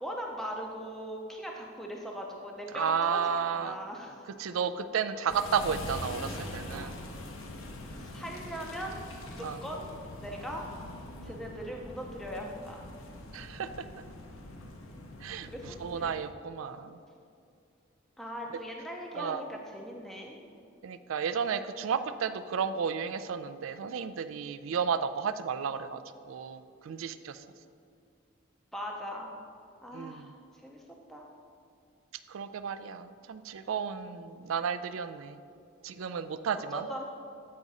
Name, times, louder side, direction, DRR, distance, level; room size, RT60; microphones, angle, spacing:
voice 1, 0.0-3.2 3.5-4.2 6.7-6.9 8.0-9.0 9.3-9.8 10.2-10.6 11.2-12.8 15.5-15.6 15.9-16.1 18.2-20.5 28.7-29.4 29.8-30.3 30.6-30.8 31.1-31.3 36.7-37.1, equal, ahead, -1 dB, 0.5 m, -40 dB
voice 2, 2.7-3.8 4.4-7.0 9.4-9.6 11.2-11.4 13.3-13.7 15.2-17.0 19.1-19.4 20.8-26.0 26.3-27.4 29.9-30.3 32.3-35.4 35.8-36.9, right 6 dB, 85° right, 11 dB, 0.4 m, -33 dB
sound 1, 5.3-16.3, left 1 dB, 90° left, 0.8 m, -43 dB
8.5 x 4.9 x 4.0 m, 2.4 s
head